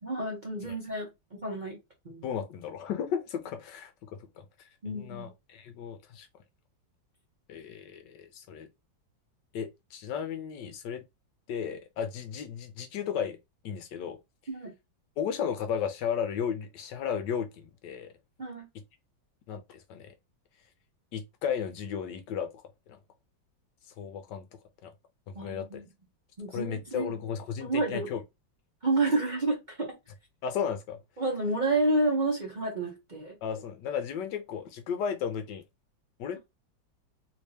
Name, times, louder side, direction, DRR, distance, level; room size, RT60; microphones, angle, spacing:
voice 1, 0.0-1.8 2.0-2.3 4.8-5.3 14.5-14.7 18.4-18.7 25.3-25.9 26.4-27.1 27.6-28.1 28.8-30.0 31.2-33.3, right 2 dB, 50° right, 0.5 m, -30 dB
voice 2, 2.2-6.3 7.5-8.7 9.5-11.0 11.5-13.4 13.6-14.2 15.2-18.1 19.5-20.1 21.1-22.6 22.9-23.0 24.0-24.4 24.8-24.9 25.3-25.7 26.5-28.2 30.4-31.0 33.4-35.6 36.2-36.4, left 7 dB, 75° left, 1.1 m, -34 dB
3.3 x 3.2 x 2.7 m
omnidirectional pair, 2.1 m